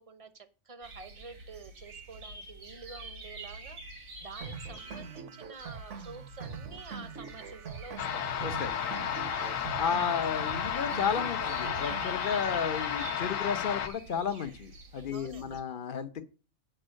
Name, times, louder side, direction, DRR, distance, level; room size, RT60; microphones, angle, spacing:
voice 1, 0.0-8.2 9.3-9.6 15.1-15.6, right 4 dB, 30° right, 11 dB, 0.8 m, -48 dB
sound 1, 0.8-5.2 5.6-15.6, right 3 dB, 80° right, 2.0 m, -48 dB
sound 2, 4.4-12.4, right 5 dB, 65° right, 1.3 m, -43 dB
sound 3, 8.0-13.9, left 9 dB, 80° left, 1.2 m, -33 dB
voice 2, 8.4-8.7 9.8-16.2, left 7 dB, 45° left, 11 dB, 0.9 m, -33 dB
8.9 x 5.4 x 6.3 m, 0.34 s
omnidirectional pair, 1.4 m